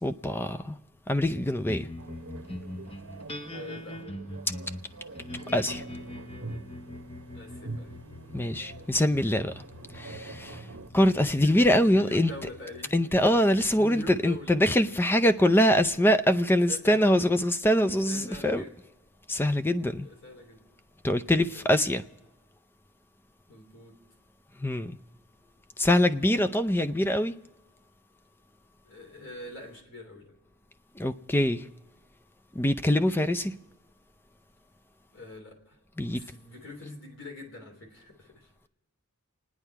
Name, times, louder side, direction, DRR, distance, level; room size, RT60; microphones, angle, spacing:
voice 1, 0.0-0.8 1.1-1.9 5.5-5.8 8.3-9.5 9.9-10.7 10.9-12.3 12.9-18.6 19.3-20.1 21.0-22.0 24.6-24.9 25.8-27.3 31.0-31.7 32.5-33.6 36.0-36.2, left 1 dB, 10° left, 0.5 m, -24 dB
sound 1, 1.7-16.4, left 1 dB, 25° left, 1.0 m, -44 dB
sound 2, 2.0-10.9, right 3 dB, 60° right, 0.9 m, -45 dB
voice 2, 3.5-4.1 7.3-7.9 11.2-13.0 13.2-14.6 16.1-16.3 16.5-17.1 17.8-18.8 20.0-20.6 21.3-21.6 23.5-23.9 28.8-30.3 35.1-35.8 36.1-38.7, left 2 dB, 60° left, 3.3 m, -44 dB
28.5 x 10.0 x 4.6 m
head